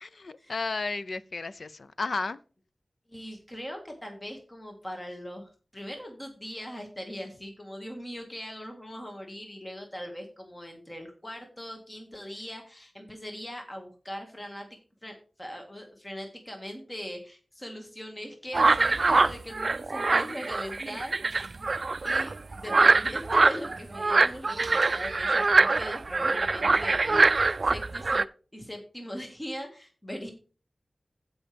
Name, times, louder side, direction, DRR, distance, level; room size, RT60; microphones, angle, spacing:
voice 1, 0.0-2.4, left 3 dB, 70° left, 0.5 m, -33 dB
voice 2, 3.1-14.7 15.0-21.5 22.0-28.2 28.5-30.3, equal, 20° left, 1.9 m, -40 dB
sound 1, 18.5-28.2, right 3 dB, 55° right, 0.3 m, -24 dB
15.5 x 5.5 x 3.4 m
wide cardioid pair, 85°, 0 cm